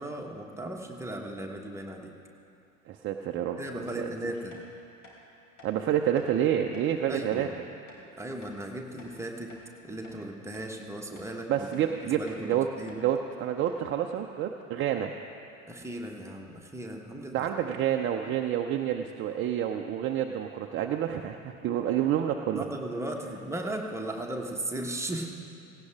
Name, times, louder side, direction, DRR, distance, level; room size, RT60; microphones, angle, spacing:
voice 1, 0.0-2.1 3.6-4.5 7.1-7.6 8.2-9.5 9.8-13.0 15.7-17.5 22.6-25.3, right 1 dB, 5° right, 1 dB, 1.4 m, -37 dB
voice 2, 2.9-3.6 4.0-4.1 5.6-7.5 11.5-12.7 13.0-15.1 17.3-22.6, right 10 dB, 30° right, 3 dB, 0.7 m, -28 dB
sound 1, 4.5-4.6 5.0-5.2 5.6-5.7 6.2-6.3 6.7-6.9 7.3-7.5 7.9-8.0 8.4-8.6 9.0-9.7 10.0-10.2 10.5-10.7 11.2-11.3 11.7-11.9 12.3-12.4 12.9-13.0 13.3-13.4 13.7-13.9, left 3 dB, 50° left, 3.7 m, -53 dB
17.5 x 17.0 x 3.6 m, 2.6 s
figure-of-eight pair, 75°, 42 cm